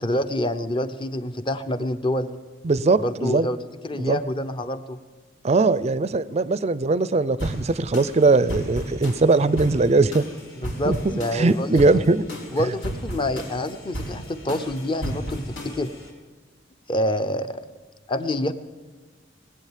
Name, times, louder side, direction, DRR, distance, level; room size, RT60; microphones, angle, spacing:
voice 1, 0.0-2.3 3.0-3.6 3.8-5.0 10.6-12.0 12.5-15.9 16.9-17.6 18.1-18.5, left 1 dB, 25° left, 10 dB, 0.7 m, -27 dB
voice 2, 2.6-3.5 4.0-4.2 5.4-10.2 10.9-12.3, right 3 dB, 35° right, 16 dB, 0.5 m, -20 dB
sound 1, 7.4-16.1, equal, 80° left, 3.5 m, -34 dB
19.5 x 8.8 x 7.4 m, 1.4 s
head